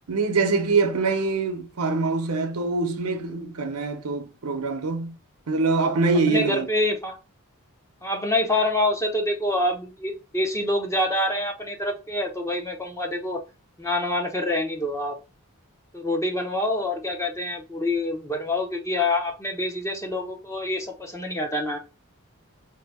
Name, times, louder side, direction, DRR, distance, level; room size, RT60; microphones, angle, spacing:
voice 1, 0.1-5.2 5.5-6.7, right 3 dB, 80° right, 0.7 m, -24 dB
voice 2, 6.3-7.2 8.0-13.4 13.8-15.2 15.9-21.8, left 1 dB, 15° left, 0.7 m, -26 dB
3.3 x 2.7 x 3.5 m
head